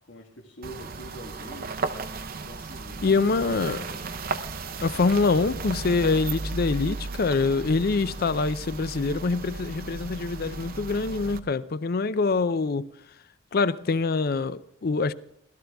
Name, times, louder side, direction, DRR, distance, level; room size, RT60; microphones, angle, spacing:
voice 1, 0.0-1.8 2.4-3.7, equal, 75° left, 1.4 m, -44 dB
sound 1, 0.6-11.4, right 3 dB, 50° right, 0.7 m, -35 dB
voice 2, 3.0-3.8 4.8-12.9 13.5-15.1, left 4 dB, 50° left, 0.5 m, -25 dB
17.0 x 13.0 x 3.5 m
head